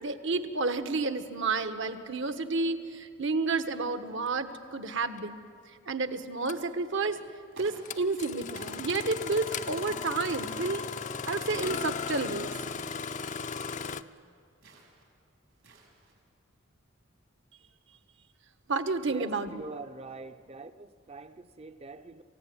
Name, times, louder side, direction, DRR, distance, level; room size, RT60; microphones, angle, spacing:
voice 1, 0.0-5.4 5.9-7.2 7.6-10.8 11.3-12.5 18.7-19.6, right 3 dB, 60° right, 1.2 m, -30 dB
Engine starting, 5.2-5.3 6.5-6.7 7.9-14.0, left 6 dB, 35° left, 0.6 m, -36 dB
sound 1, 6.9-7.3 7.5-8.2 8.5-9.0 9.5-9.9 10.6-10.9 11.5-12.2 12.5-13.0 13.5-13.8 14.6-15.0 15.5-16.1, right 2 dB, 80° right, 5.8 m, -53 dB
voice 2, 19.1-22.2, right 2 dB, 30° right, 0.7 m, -43 dB
28.0 x 16.0 x 9.4 m
head